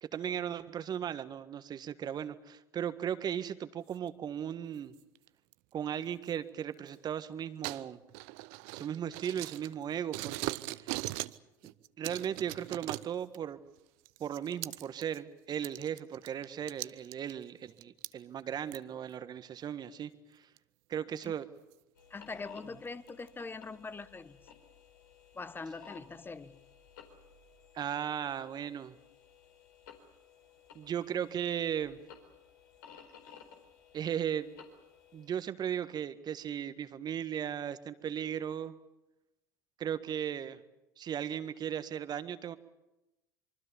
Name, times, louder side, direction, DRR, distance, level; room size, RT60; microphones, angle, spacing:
voice 1, 0.0-4.9 5.7-8.0 8.7-11.0 12.0-13.6 14.2-20.4 20.9-21.5 27.7-29.0 30.8-32.0 33.9-34.5 35.1-38.7 39.8-40.6 41.0-42.6, right 9 dB, 40° right, 12 dB, 1.6 m, -36 dB
sound 1, 3.9-4.1 5.0-5.5 6.3-6.4 7.6-9.8 10.1-11.4 11.6-13.4 14.1-15.2 15.5-18.1 18.7-18.8 19.4-19.5 20.6-20.7 21.2-21.3 21.7-21.8 22.3-22.4 22.9-23.3, right 21 dB, 65° right, 0.8 m, -40 dB
sound 2, 21.9-35.3, left 7 dB, 75° left, 4.2 m, -57 dB
voice 2, 22.1-24.4 25.3-26.6, left 4 dB, 20° left, 14 dB, 1.4 m, -43 dB
25.5 x 24.0 x 7.1 m, 0.95 s
hypercardioid pair, 75°, 11 cm